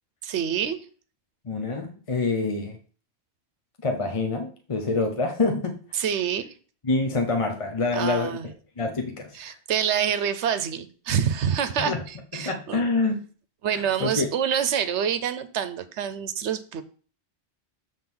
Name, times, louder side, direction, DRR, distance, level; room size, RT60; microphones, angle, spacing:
voice 1, 0.2-0.9 5.9-6.5 7.9-8.5 9.3-12.8 13.6-16.8, right 8 dB, 85° right, 12 dB, 1.0 m, -27 dB
voice 2, 1.4-2.8 3.8-5.8 6.8-9.5 11.8-12.0 12.3-13.2 13.7-14.3, left 3 dB, 30° left, 5 dB, 0.8 m, -26 dB
7.1 x 3.8 x 6.0 m, 0.41 s
omnidirectional pair, 1.2 m